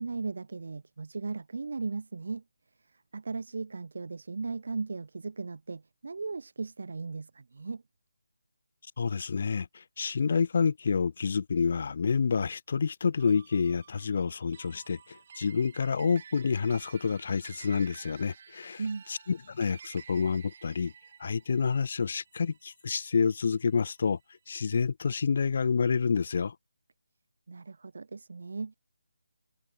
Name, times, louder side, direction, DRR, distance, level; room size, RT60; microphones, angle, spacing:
voice 1, 0.0-2.4 2.8-7.8 18.8-19.0 27.5-28.8, right 4 dB, 60° right, 2.9 m, -37 dB
voice 2, 9.0-18.8 19.1-20.9 21.2-24.2 24.5-26.6, left 5 dB, 40° left, 0.6 m, -28 dB
sound 1, 13.2-23.8, right 6 dB, 35° right, 4.3 m, -52 dB
hypercardioid pair, 170°, 0 cm